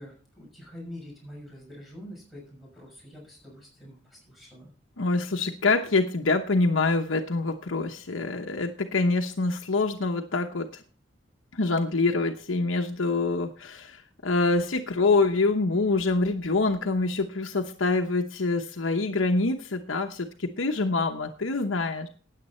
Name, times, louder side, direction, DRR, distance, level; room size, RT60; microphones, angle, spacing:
voice 1, 0.0-4.7, equal, ahead, -3 dB, 6.1 m, -45 dB
voice 2, 5.0-10.8 11.5-22.1, left 3 dB, 80° left, 3 dB, 1.0 m, -25 dB
13.5 x 9.2 x 4.3 m, 0.41 s
head